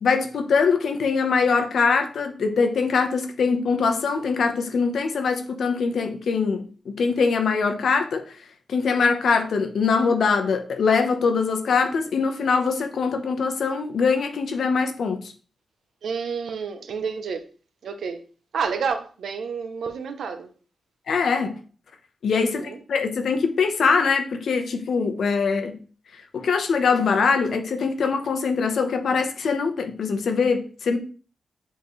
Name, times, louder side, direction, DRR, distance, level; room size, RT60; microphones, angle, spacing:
voice 1, 0.0-8.3 8.7-15.2 21.1-21.6 22.2-25.8 26.3-31.0, left 5 dB, 70° left, 0.9 m, -23 dB
voice 2, 16.0-17.5 17.8-18.2 18.5-20.5 22.4-22.8, right 6 dB, 75° right, 0.7 m, -29 dB
8.1 x 3.8 x 3.1 m
wide cardioid pair, 160°, 0 cm